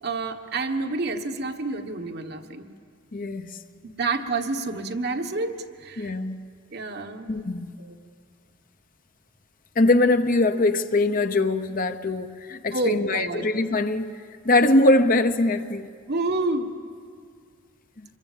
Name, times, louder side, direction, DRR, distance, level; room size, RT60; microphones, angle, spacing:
voice 1, 0.0-2.7 3.8-6.1 6.7-7.4 7.8-7.9 12.7-13.5 16.1-16.7, right 3 dB, 55° right, 5 dB, 1.3 m, -29 dB
voice 2, 3.1-3.6 6.0-6.4 7.3-7.7 9.8-14.1 14.4-15.9, left 2 dB, 45° left, 9 dB, 0.9 m, -22 dB
26.5 x 22.0 x 7.4 m, 2.1 s
head